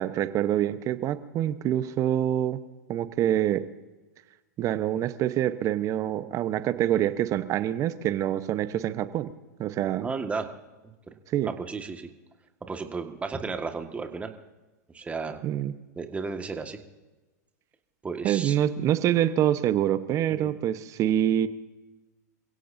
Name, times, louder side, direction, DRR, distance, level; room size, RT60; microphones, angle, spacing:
voice 1, 0.0-2.6 2.9-3.6 4.6-9.3 9.6-10.1 11.3-11.5 15.4-15.7 18.2-21.5, right 11 dB, 35° right, 12 dB, 1.1 m, -26 dB
voice 2, 10.0-10.5 11.1-11.2 11.4-12.1 12.7-14.3 14.9-15.4 16.0-16.8 18.0-18.6 20.3-20.6, right 4 dB, 15° right, 5 dB, 1.8 m, -33 dB
28.0 x 16.5 x 2.8 m, 1.2 s
hypercardioid pair, 115°, 9 cm